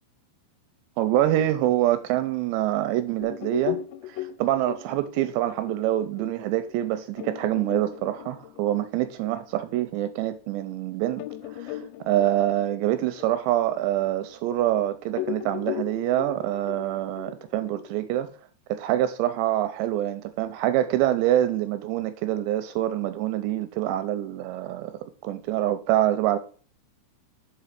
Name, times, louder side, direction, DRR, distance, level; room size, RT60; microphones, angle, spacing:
voice 1, 1.0-3.8 4.1-18.3 18.7-26.4, right 13 dB, 80° right, 2.6 m, -25 dB
sound 1, 3.2-10.3 10.7-10.8 11.2-14.8 15.1-18.2, left 14 dB, 85° left, 3.0 m, -37 dB
5.9 x 5.2 x 5.7 m
omnidirectional pair, 5.3 m